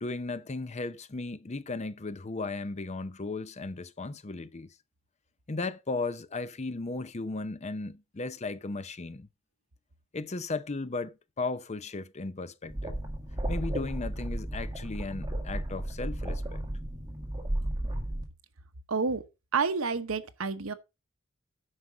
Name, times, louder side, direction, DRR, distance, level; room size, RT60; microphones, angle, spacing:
voice 1, 0.0-4.7 5.5-9.3 10.1-12.9 13.5-16.6, left 3 dB, 35° left, 0.6 m, -36 dB
sound 1, 12.7-18.2, right 1 dB, 20° right, 1.9 m, -34 dB
voice 2, 18.9-19.2 19.5-20.7, right 5 dB, 80° right, 1.0 m, -29 dB
9.6 x 5.7 x 5.0 m
head